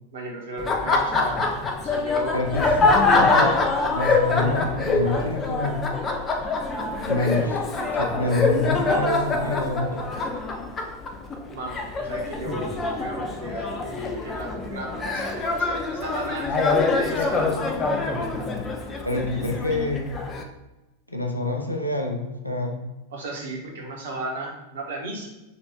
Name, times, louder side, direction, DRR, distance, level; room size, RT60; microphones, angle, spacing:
voice 1, 0.1-1.5 1.8-2.4 11.5-16.6 16.9-17.6 23.1-25.3, right 2 dB, 60° right, -1 dB, 1.1 m, -35 dB
Laughter, 0.6-20.4, left 3 dB, 25° left, 0.5 m, -24 dB
voice 2, 2.3-2.7 3.1-3.6 3.9-5.8 7.1-7.6 7.9-10.0 19.0-20.1 21.1-22.8, left 2 dB, 85° left, 2 dB, 0.6 m, -27 dB
4.2 x 2.5 x 4.4 m, 1.0 s
figure-of-eight pair, 90°, 0 cm